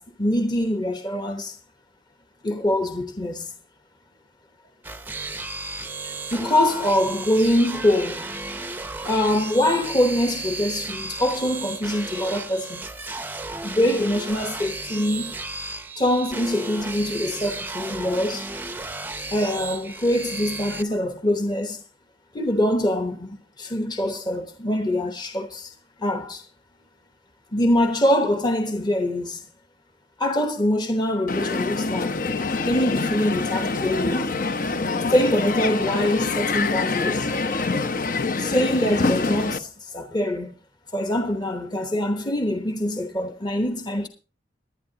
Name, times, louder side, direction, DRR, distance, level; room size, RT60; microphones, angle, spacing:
voice 1, 0.0-1.6 2.4-3.5 6.0-8.4 9.0-12.8 13.6-15.4 16.0-18.5 19.3-21.8 22.3-25.7 26.0-26.4 27.5-29.5 30.2-32.3 32.7-34.3 35.1-37.3 38.4-40.5 40.9-44.1, left 1 dB, 25° left, 1.0 m, -24 dB
sound 1, 4.8-20.8, right 3 dB, 10° right, 0.7 m, -34 dB
Crowd, 31.3-39.6, left 3 dB, 50° left, 0.8 m, -25 dB
19.0 x 11.0 x 2.8 m
head